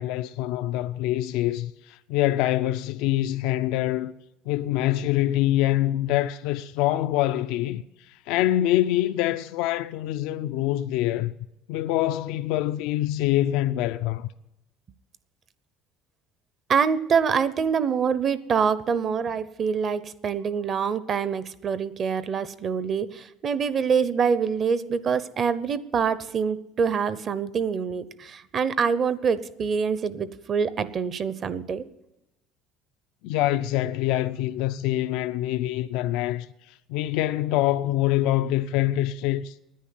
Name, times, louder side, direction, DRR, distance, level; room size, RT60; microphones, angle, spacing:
voice 1, 0.0-4.1 4.5-11.3 11.7-14.3 33.2-39.5, left 14 dB, 80° left, 0.4 m, -25 dB
voice 2, 16.7-31.9, right 6 dB, 40° right, 0.8 m, -25 dB
10.5 x 9.7 x 9.6 m
cardioid pair, 125°, 0 cm